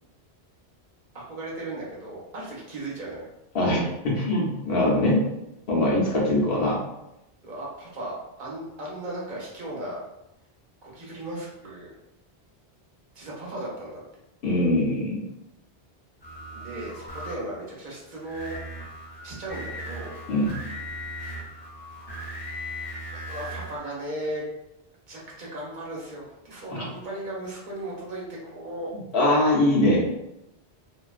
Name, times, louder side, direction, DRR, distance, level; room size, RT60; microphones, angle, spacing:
voice 1, 1.1-3.3 7.4-10.0 10.8-11.9 13.1-14.0 16.5-18.6 19.2-20.1 23.1-24.5 25.1-28.9, right 1 dB, 50° right, -4 dB, 0.9 m, -36 dB
voice 2, 3.5-5.2 5.7-6.8 14.4-15.2 20.3-20.5 26.7-26.8 29.1-30.0, left 1 dB, 65° left, -5 dB, 0.9 m, -22 dB
sound 1, 16.2-17.6 18.1-23.8, equal, 25° left, 0.6 m, -38 dB
2.4 x 2.2 x 2.4 m, 0.87 s
omnidirectional pair, 1.1 m